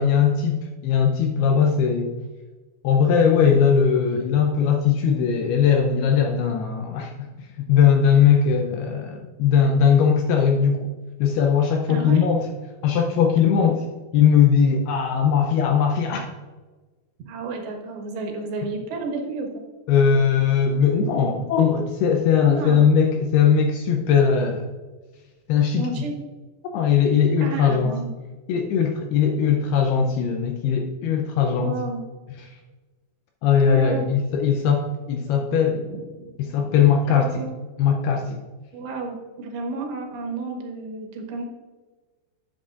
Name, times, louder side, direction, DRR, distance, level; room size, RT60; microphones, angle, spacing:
voice 1, 0.0-2.1 2.8-7.3 7.6-10.8 11.2-12.5 12.8-13.8 14.1-16.3 19.9-24.6 25.5-25.8 26.7-27.9 28.5-31.7 33.4-35.8 36.4-37.3 37.8-38.4, left 7 dB, 80° left, 3 dB, 2.4 m, -19 dB
voice 2, 11.9-12.3 13.7-13.8 17.3-19.6 22.4-22.9 25.8-26.1 27.4-28.1 31.6-32.0 33.7-34.1 35.7-36.3 37.1-37.5 38.7-41.5, right 3 dB, 75° right, 2 dB, 3.3 m, -31 dB
10.0 x 8.2 x 2.4 m, 1.3 s
omnidirectional pair, 5.1 m